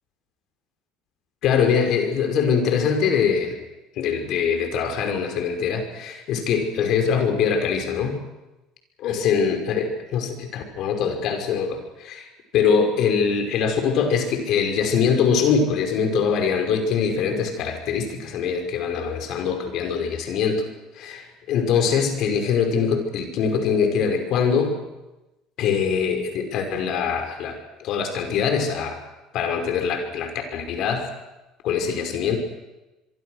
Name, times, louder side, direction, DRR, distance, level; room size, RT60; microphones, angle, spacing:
voice 1, 1.4-3.6 4.0-8.2 9.0-12.3 12.5-20.6 21.0-24.8 25.6-29.0 29.3-31.1 31.6-32.4, left 6 dB, 60° left, 5 dB, 5.6 m, -23 dB
26.0 x 23.0 x 6.5 m, 1.0 s
supercardioid pair, 100°, 0 cm